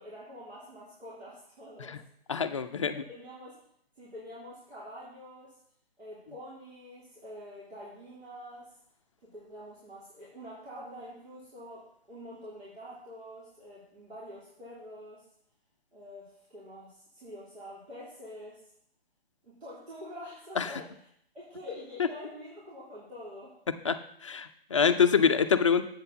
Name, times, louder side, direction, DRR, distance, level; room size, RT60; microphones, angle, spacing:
voice 1, 0.0-2.0 2.9-3.6 3.9-5.6 6.0-8.7 9.2-15.2 15.9-18.6 19.4-21.1 21.3-23.6, equal, 85° right, -8 dB, 3.1 m, -46 dB
voice 2, 2.3-2.9 20.6-20.7 23.8-25.8, left 6 dB, 30° left, 9 dB, 0.4 m, -25 dB
8.0 x 4.3 x 6.6 m, 0.68 s
hypercardioid pair, 150°, 31 cm